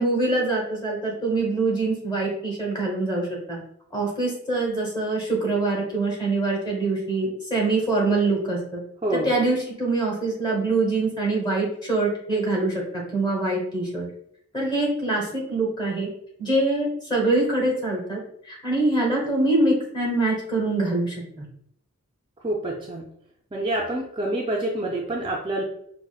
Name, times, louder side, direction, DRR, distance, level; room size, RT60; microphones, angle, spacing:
voice 1, 0.0-3.6 3.9-8.8 9.2-12.8 13.1-14.1 14.5-16.1 16.4-18.2 18.5-21.4, right 2 dB, 20° left, -2 dB, 0.9 m, -24 dB
voice 2, 9.0-9.3 22.4-23.1 23.5-25.6, right 1 dB, 25° right, -2 dB, 0.3 m, -27 dB
4.7 x 2.0 x 2.3 m, 0.70 s
head